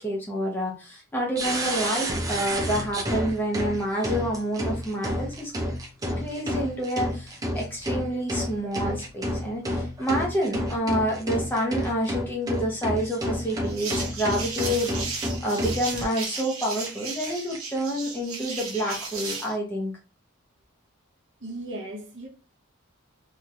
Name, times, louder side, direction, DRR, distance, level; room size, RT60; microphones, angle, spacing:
voice 1, 0.0-5.5 6.2-19.9, equal, 10° left, 0.9 m, -28 dB
sound 1, 1.3-16.4 16.8-16.9 17.2-17.8, equal, 15° right, 0.5 m, -30 dB
sound 2, 13.6-19.5, right 4 dB, 80° right, 1.1 m, -35 dB
voice 2, 21.4-22.3, right 1 dB, 55° right, 1.0 m, -36 dB
3.0 x 2.9 x 2.5 m
head